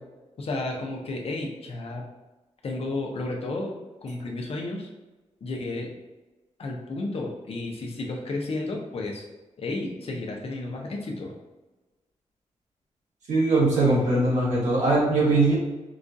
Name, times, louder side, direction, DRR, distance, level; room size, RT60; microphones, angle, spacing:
voice 1, 0.4-2.0 2.6-4.9 5.4-5.9 6.6-9.2 9.6-11.3, left 2 dB, 55° left, 0 dB, 0.6 m, -32 dB
voice 2, 13.3-15.5, right 2 dB, 85° right, -6 dB, 1.5 m, -21 dB
4.9 x 2.4 x 2.6 m, 1.1 s
wide cardioid pair, 175°, 12 cm